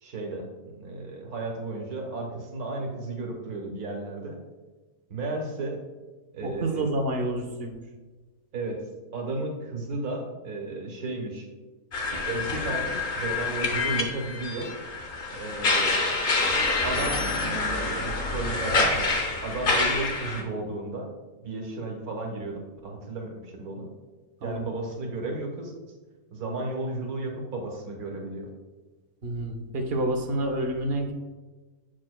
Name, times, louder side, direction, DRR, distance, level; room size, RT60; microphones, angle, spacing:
voice 1, 0.0-4.4 5.1-5.8 6.3-6.8 8.5-8.8 9.1-11.5 12.3-14.7 15.3-16.0 16.8-17.2 17.6-19.1 19.4-21.1 21.4-23.9 24.4-25.7 26.3-28.5, right 2 dB, 80° right, 1 dB, 1.6 m, -33 dB
voice 2, 6.4-7.8 24.4-24.6 29.2-31.1, right 1 dB, 50° right, 3 dB, 0.8 m, -28 dB
sound 1, 11.9-20.4, left 3 dB, 40° left, 0.9 m, -27 dB
7.4 x 6.6 x 2.2 m, 1.3 s
omnidirectional pair, 1.6 m